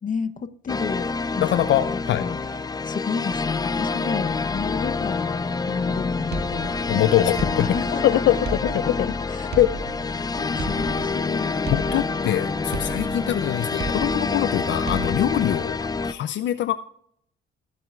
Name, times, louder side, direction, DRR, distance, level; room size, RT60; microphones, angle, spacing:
voice 1, 0.0-9.6 10.4-11.6, left 5 dB, 40° left, 11 dB, 0.9 m, -32 dB
sound 1, 0.7-16.1, left 4 dB, 20° left, 0.5 m, -27 dB
voice 2, 1.4-2.3 6.9-8.4 8.7-9.1 9.6-9.7 11.7-15.8 16.0-16.8, left 12 dB, 70° left, 12 dB, 0.5 m, -23 dB
sound 2, 6.3-7.0 7.4-8.0 8.4-9.1 9.5-10.2 10.6-11.3 11.7-12.4 12.7-13.4 13.8-14.5 14.9-15.5, right 3 dB, 55° right, 1.5 m, -34 dB
19.5 x 7.7 x 2.4 m, 0.67 s
cardioid pair, 90°, 20 cm